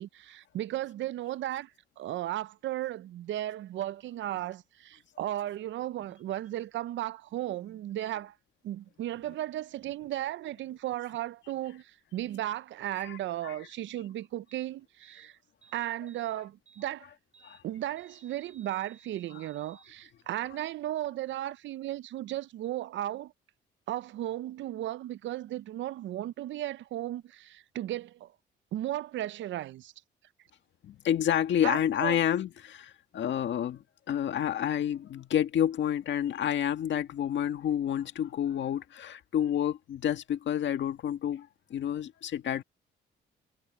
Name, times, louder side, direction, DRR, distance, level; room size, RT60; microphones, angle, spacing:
voice 1, 0.0-1.7 2.0-8.3 8.6-15.4 15.7-17.1 17.6-23.3 23.9-28.3 28.7-29.9 31.6-32.2, right 13 dB, 70° right, 0.6 m, -35 dB
sound 1, 14.5-14.7 15.0-15.3 15.6-16.3 16.7-16.9 17.3-17.6 18.0-19.9, right 6 dB, 35° right, 7.9 m, -59 dB
voice 2, 30.8-42.6, left 10 dB, 65° left, 1.8 m, -29 dB
cardioid pair, 90°, 20 cm